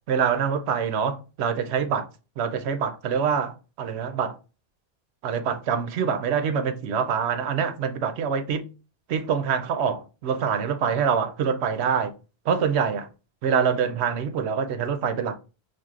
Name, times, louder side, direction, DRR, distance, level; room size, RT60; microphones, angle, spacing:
voice 1, 0.1-2.1 2.4-4.4 5.2-8.7 9.1-12.1 12.5-13.1 13.4-15.4, right 7 dB, 85° right, 0.8 m, -25 dB
5.9 x 2.5 x 2.4 m
omnidirectional pair, 1.1 m